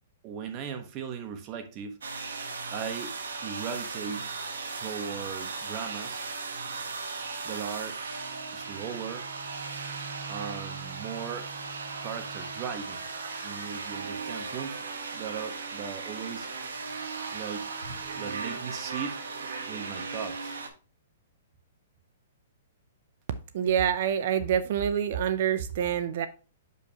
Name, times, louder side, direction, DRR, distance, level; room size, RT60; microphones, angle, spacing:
voice 1, 0.2-2.0 2.7-3.1 3.4-4.3 4.7-6.2 7.4-8.0 8.5-9.3 10.3-11.5 12.0-13.1 13.4-14.8 15.1-16.5 17.3-17.7 18.2-19.2 19.7-20.6 24.2-24.3, right 7 dB, 35° right, 1.1 m, -38 dB
sound 1, 2.0-20.7, right 4 dB, 85° right, 1.1 m, -37 dB
voice 2, 23.5-26.3, right 9 dB, 60° right, 0.5 m, -26 dB
6.3 x 5.5 x 2.9 m
hypercardioid pair, 140°, 0 cm